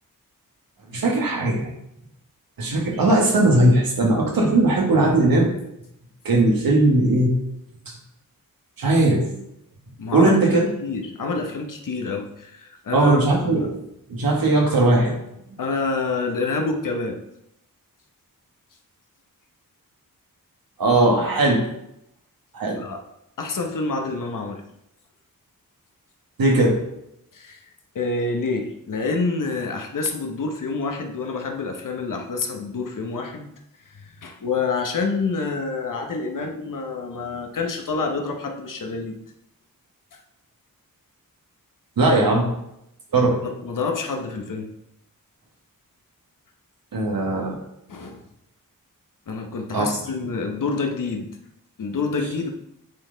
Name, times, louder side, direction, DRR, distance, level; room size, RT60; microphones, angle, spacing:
voice 1, 0.9-1.7 2.6-5.5 6.2-7.3 7.9-8.0 8.8-9.2 10.1-10.7 12.9-13.8 14.1-15.1 20.8-21.6 22.5-22.8 26.4-26.8 42.0-42.5 43.1-43.4 46.9-47.6 49.7-49.9, right 2 dB, 80° right, 0 dB, 1.6 m, -18 dB
voice 2, 10.0-10.4 10.8-13.7 15.6-17.2 22.7-23.0 23.4-24.6 27.3-27.6 27.9-33.5 33.9-39.1 43.4-44.7 47.9-48.2 49.3-51.3 51.8-52.5, left 4 dB, 65° left, 3 dB, 1.0 m, -27 dB
8.6 x 4.1 x 3.9 m, 0.80 s
wide cardioid pair, 125°, 34 cm